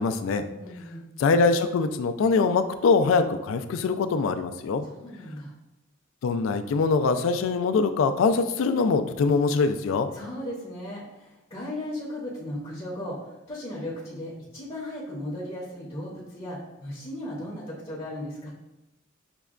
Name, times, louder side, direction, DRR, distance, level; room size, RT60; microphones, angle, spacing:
voice 1, 0.0-0.4 1.2-4.8 6.2-10.1, left 4 dB, 75° left, 9 dB, 0.3 m, -23 dB
voice 2, 0.6-1.1 4.8-5.5 10.1-18.5, left 1 dB, 30° left, -7 dB, 0.6 m, -36 dB
5.8 x 2.1 x 2.4 m, 0.94 s
head